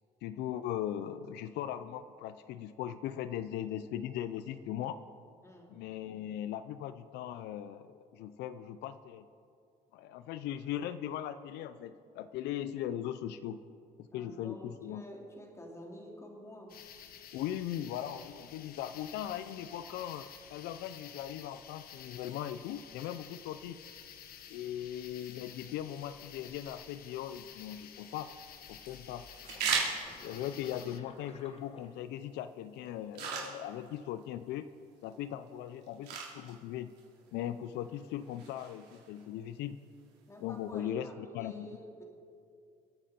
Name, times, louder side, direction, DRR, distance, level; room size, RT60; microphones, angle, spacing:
voice 1, 0.2-5.0 5.7-9.2 9.9-13.6 14.0-15.0 17.3-23.8 24.5-28.3 28.7-29.3 30.2-34.7 35.0-36.9 37.3-39.8 40.4-41.7, left 11 dB, 85° left, 13 dB, 0.5 m, -39 dB
voice 2, 5.4-5.8 14.1-16.8 40.3-42.0, equal, 15° left, 0 dB, 2.9 m, -49 dB
sound 1, 16.7-31.0, left 8 dB, 60° left, 1.0 m, -51 dB
sound 2, 27.8-40.8, right 5 dB, 75° right, 3.6 m, -42 dB
sound 3, 29.4-32.4 33.2-33.7, left 4 dB, 35° left, 1.4 m, -54 dB
26.5 x 9.1 x 4.3 m, 2.4 s
cardioid pair, 110°, 17 cm